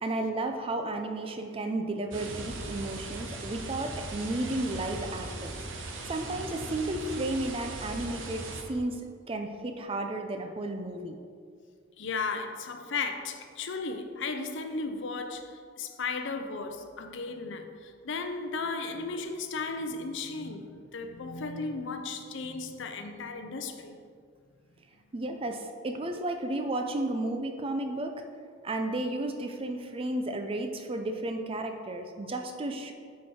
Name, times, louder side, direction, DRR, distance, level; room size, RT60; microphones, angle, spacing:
voice 1, 0.0-5.6 6.0-11.2 25.1-28.2 28.6-32.9, right 2 dB, 30° right, 0.5 m, -33 dB
sound 1, 2.1-8.6, right 2 dB, 75° right, 0.9 m, -39 dB
voice 2, 12.0-24.0, left 4 dB, 65° left, 0.6 m, -35 dB
9.1 x 4.6 x 4.3 m
head